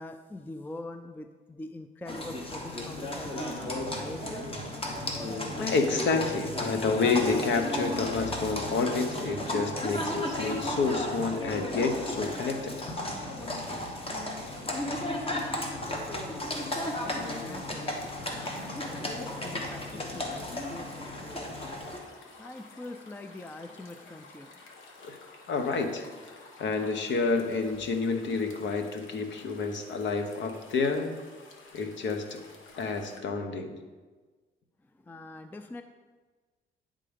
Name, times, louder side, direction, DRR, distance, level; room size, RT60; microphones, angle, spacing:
voice 1, 0.0-3.6 4.0-4.5 16.7-24.5 35.0-35.8, left 2 dB, 10° left, 8 dB, 0.3 m, -44 dB
Livestock farm animals working animals, 2.1-22.0, left 1 dB, 30° left, 1.3 m, -34 dB
sound 1, 3.6-11.8, right 2 dB, 25° right, 0.7 m, -48 dB
voice 2, 5.6-12.7 25.0-25.2 25.5-26.1 26.6-31.1 31.7-32.4 32.8-33.7, left 4 dB, 70° left, 6 dB, 0.9 m, -29 dB
sound 2, 16.5-33.2, left 3 dB, 85° left, 1.1 m, -52 dB
9.8 x 3.8 x 5.1 m, 1.4 s
cardioid pair, 90°, 20 cm